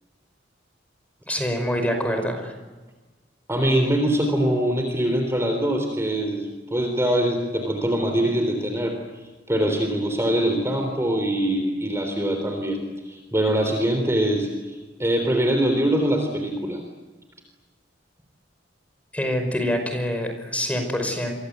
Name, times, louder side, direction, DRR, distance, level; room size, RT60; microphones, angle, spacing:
voice 1, 1.3-2.5 19.1-21.3, equal, 10° left, 6 dB, 5.2 m, -25 dB
voice 2, 3.5-8.9 9.5-12.8 13.1-16.8, right 1 dB, 15° right, 4 dB, 3.6 m, -23 dB
30.0 x 24.5 x 8.2 m, 1.2 s
head